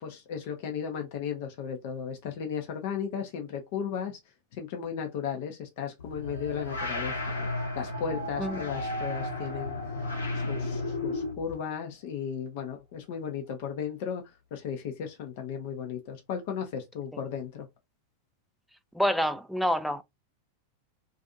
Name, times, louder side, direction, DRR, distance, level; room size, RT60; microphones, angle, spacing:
voice 1, 0.0-4.2 4.5-7.5 7.7-9.8 10.3-14.2 14.5-17.7, left 7 dB, 50° left, 0.6 m, -35 dB
sound 1, 6.0-11.5, left 2 dB, 75° left, 0.8 m, -33 dB
voice 2, 18.9-20.0, equal, ahead, 0.3 m, -27 dB
2.5 x 2.4 x 2.5 m
figure-of-eight pair, 90°, 0 cm